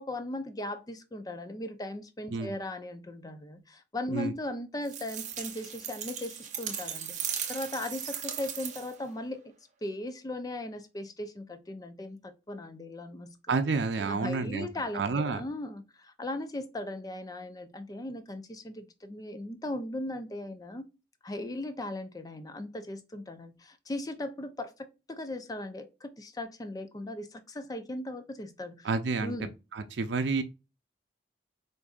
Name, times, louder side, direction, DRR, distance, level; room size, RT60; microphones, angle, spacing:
voice 1, 0.0-9.5 9.8-13.5 14.0-20.9 21.2-28.9 29.2-29.5, left 1 dB, 20° left, 0.5 m, -38 dB
sound 1, 4.8-9.0, right 9 dB, 45° right, 0.6 m, -37 dB
voice 2, 13.5-14.7 14.9-15.4 28.8-29.4 29.7-30.4, right 4 dB, 85° right, 0.5 m, -29 dB
4.7 x 2.6 x 2.4 m
head